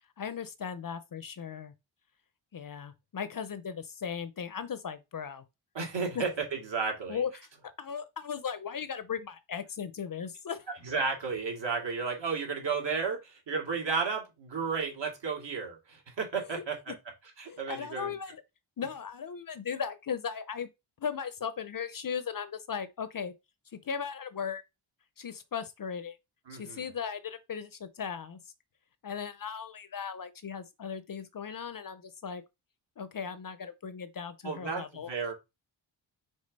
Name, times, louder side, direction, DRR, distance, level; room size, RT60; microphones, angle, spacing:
voice 1, 0.2-1.7 2.5-5.4 6.1-6.2 7.1-10.7 16.6-16.7 17.5-18.4 18.8-20.7 21.0-23.3 23.7-24.6 25.2-26.2 26.5-28.4 29.0-32.4 33.0-35.1, left 7 dB, 45° left, 0.6 m, -37 dB
voice 2, 5.7-7.2 10.8-16.8 17.4-18.1 26.5-26.9 34.4-35.3, right 5 dB, 60° right, 2.4 m, -33 dB
5.4 x 3.5 x 5.3 m
wide cardioid pair, 160°, 48 cm